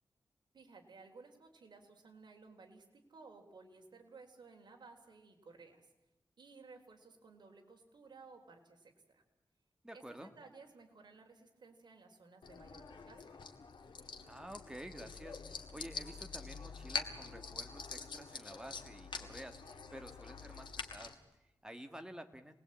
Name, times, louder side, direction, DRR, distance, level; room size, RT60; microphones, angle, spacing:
voice 1, 0.5-5.9 6.4-9.2 9.9-13.2, right 4 dB, 65° right, 3 dB, 3.8 m, -57 dB
voice 2, 9.8-10.3 14.3-22.5, right 1 dB, 10° right, 7 dB, 1.7 m, -51 dB
sound 1, 12.4-21.1, left 5 dB, 85° left, 2.0 m, -46 dB
27.0 x 20.5 x 8.7 m, 0.97 s
wide cardioid pair, 145°, 8 cm